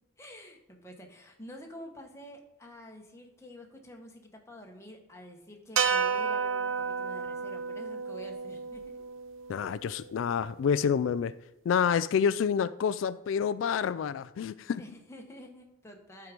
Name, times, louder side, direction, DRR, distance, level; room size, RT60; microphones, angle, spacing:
voice 1, 0.2-8.8 14.8-16.3, equal, 15° left, 1.3 m, -48 dB
sound 1, 5.8-10.1, right 6 dB, 85° right, 0.9 m, -32 dB
voice 2, 9.5-11.3 11.7-14.8, left 7 dB, 85° left, 0.3 m, -28 dB
12.0 x 4.8 x 5.2 m
head